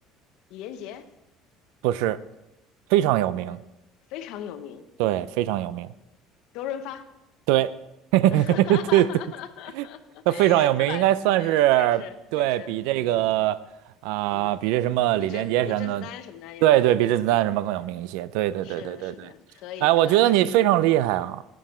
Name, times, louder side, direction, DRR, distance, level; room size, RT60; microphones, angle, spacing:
voice 1, 0.5-1.1 3.4-3.6 4.1-4.9 6.5-7.1 8.3-11.1 11.4-13.3 14.3-14.6 15.2-17.4 18.5-20.3, left 10 dB, 55° left, 0.8 m, -39 dB
voice 2, 1.8-2.2 2.9-3.6 5.0-5.9 7.5-7.7 8.1-9.1 9.8-9.9 10.3-12.0 12.3-13.6 14.0-16.1 16.6-19.3 19.8-21.4, right 14 dB, 75° right, 0.4 m, -22 dB
10.5 x 9.3 x 4.4 m
cardioid pair, 180°, 0 cm